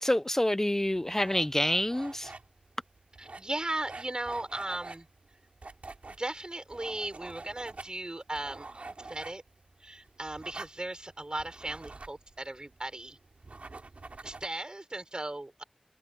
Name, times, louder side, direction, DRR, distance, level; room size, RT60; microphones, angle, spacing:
voice 1, 0.0-2.3, left 1 dB, 20° left, 0.6 m, -27 dB
sound 1, 0.9-14.5, right 3 dB, 90° right, 3.0 m, -47 dB
voice 2, 3.2-5.1 6.2-9.4 9.8-13.2 14.2-15.6, right 2 dB, 40° right, 6.1 m, -37 dB
wide cardioid pair, 55°, 2 cm